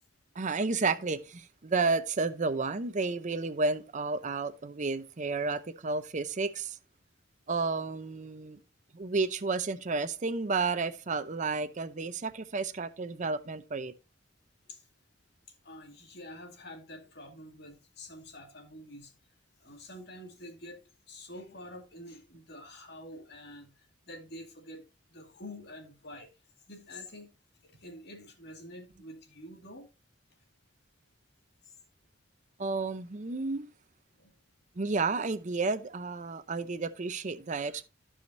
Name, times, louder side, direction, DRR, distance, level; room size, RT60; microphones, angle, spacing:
voice 1, 0.4-6.8 7.5-8.6 8.9-13.9 32.6-33.7 34.8-37.9, right 4 dB, 40° right, 0.7 m, -31 dB
voice 2, 15.6-19.1 19.6-20.8 21.1-23.7 24.1-24.8 25.1-26.3 26.7-27.3 27.7-29.9 34.2-34.3 37.5-37.7, left 1 dB, 60° left, 2.1 m, -47 dB
14.5 x 5.0 x 2.6 m
head